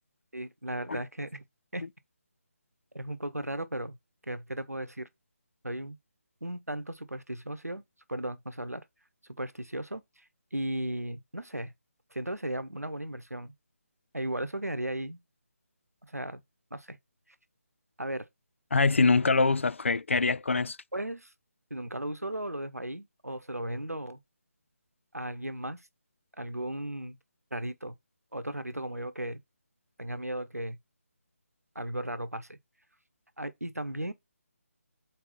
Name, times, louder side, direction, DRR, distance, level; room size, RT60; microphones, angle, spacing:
voice 1, 0.3-1.4 1.7-1.8 2.9-4.0 4.2-5.1 5.6-6.0 6.4-7.8 8.1-8.8 9.3-10.0 10.5-11.7 12.1-13.5 14.1-15.2 16.0-16.4 16.7-17.0 18.0-18.3 19.4-19.5 20.9-21.3 21.7-24.2 25.1-25.8 26.4-27.2 27.5-27.9 28.3-29.4 30.0-30.8 31.7-32.6 33.4-34.1, right 1 dB, 85° right, 0.9 m, -36 dB
voice 2, 18.7-20.8, left 3 dB, 55° left, 0.3 m, -24 dB
4.2 x 4.1 x 5.6 m
figure-of-eight pair, 150°, 8 cm